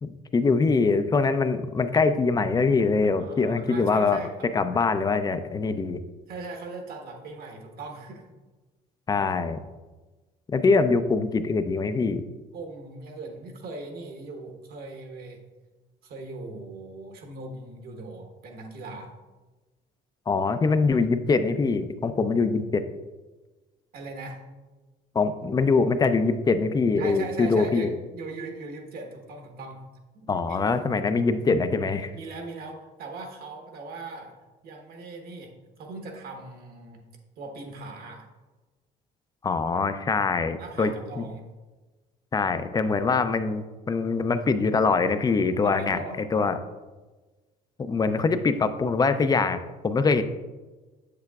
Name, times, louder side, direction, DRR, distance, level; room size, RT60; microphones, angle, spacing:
voice 1, 0.0-4.2 4.5-6.0 9.1-9.6 10.5-12.2 20.3-22.8 25.1-28.0 30.3-32.1 39.4-41.2 42.3-46.6 47.8-50.2, left 4 dB, 25° left, 10 dB, 0.4 m, -23 dB
voice 2, 3.2-4.5 6.3-8.3 12.5-15.4 16.0-19.1 23.9-24.4 27.0-29.9 30.1-30.6 32.1-34.3 34.6-35.5 35.8-37.0 37.4-38.3 40.6-41.4 45.6-46.2, right 3 dB, 65° right, 3 dB, 1.2 m, -39 dB
7.5 x 6.7 x 2.3 m, 1.2 s
cardioid pair, 110°, 17 cm